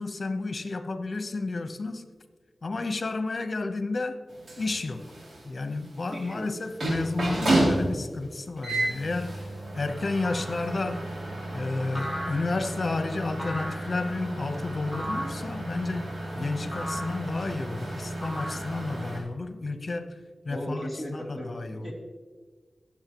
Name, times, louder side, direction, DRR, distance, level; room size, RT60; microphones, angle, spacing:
voice 1, 0.0-2.0 2.6-4.2 4.6-5.1 5.4-11.1 11.5-20.2 20.4-21.9, left 3 dB, 55° left, 1.0 m, -31 dB
sound 1, 4.3-19.2, right 1 dB, 85° right, 3.7 m, -32 dB
voice 2, 6.1-6.5 20.5-21.9, equal, 30° right, 3.3 m, -37 dB
sound 2, 10.2-10.7 11.9-12.7 13.4-14.0 14.9-15.5 16.7-17.2 18.2-19.0, equal, ahead, 3.9 m, -36 dB
21.5 x 7.4 x 3.1 m
wide cardioid pair, 70°, 0 cm